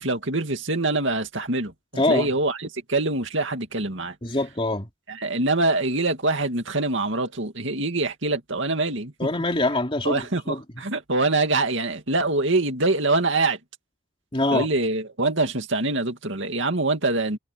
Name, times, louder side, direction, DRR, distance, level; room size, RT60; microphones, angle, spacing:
voice 1, 0.0-4.1 5.1-9.3 10.0-13.6 14.5-17.4, right 2 dB, 60° right, 2.5 m, -24 dB
voice 2, 2.0-2.3 4.2-4.9 9.2-10.6 14.3-14.7, left 2 dB, 25° left, 3.2 m, -24 dB
head